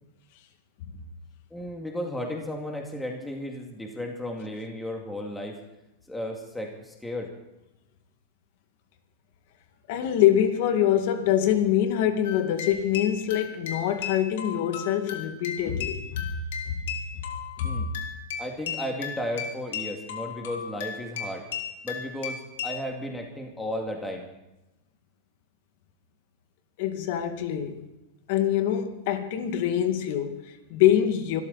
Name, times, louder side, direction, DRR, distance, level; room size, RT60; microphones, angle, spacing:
voice 1, 1.5-5.6 6.1-7.3 17.6-17.9 18.4-21.5 21.8-24.3, left 1 dB, 5° left, 2.3 m, -34 dB
voice 2, 9.9-16.3 16.7-16.8 17.2-17.3 17.6-17.8 26.8-27.8 28.3-31.4, left 10 dB, 60° left, 2.1 m, -24 dB
sound 1, 12.2-22.8, left 7 dB, 80° left, 2.5 m, -36 dB
24.5 x 13.5 x 4.1 m
supercardioid pair, 140°, 0 cm